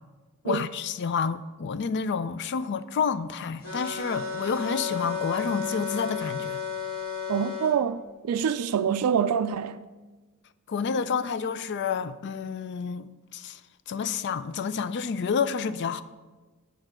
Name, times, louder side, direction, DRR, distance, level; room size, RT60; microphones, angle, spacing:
voice 1, 0.4-6.6 10.7-13.6 13.9-16.0, left 6 dB, 50° left, 0.4 m, -29 dB
sound 1, 3.6-7.7, left 6 dB, 70° left, 2.7 m, -33 dB
voice 2, 7.3-9.8, right 7 dB, 85° right, 0.3 m, -26 dB
8.9 x 4.6 x 6.0 m
head